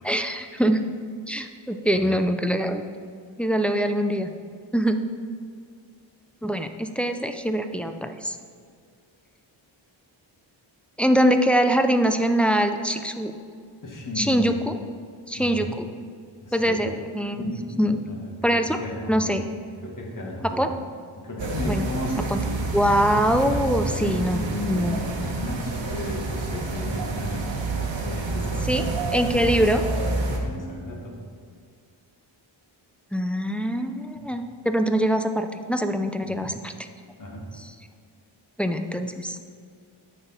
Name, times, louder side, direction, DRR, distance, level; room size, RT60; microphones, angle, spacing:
voice 1, 0.0-0.8 1.3-2.8 3.4-4.3 4.7-5.0 6.4-8.4 11.0-13.3 14.2-14.8 15.3-15.9 16.5-17.4 17.8-18.0 18.4-18.8 19.1-19.4 20.6-20.7 21.7-21.9 22.3-22.4 22.7-25.0 28.7-28.8 29.1-29.8 33.1-36.7 38.6-39.4, equal, 5° left, 6 dB, 0.5 m, -23 dB
voice 2, 13.8-14.5 15.3-15.7 16.4-16.8 17.3-19.4 19.8-20.7 21.2-22.6 23.9-29.1 30.4-31.2 36.3-36.5 37.2-37.5, left 1 dB, 40° left, -2 dB, 2.0 m, -34 dB
sound 1, 21.4-30.4, right 2 dB, 70° right, 1.4 m, -28 dB
10.0 x 7.1 x 4.4 m, 2.2 s
wide cardioid pair, 100°, 47 cm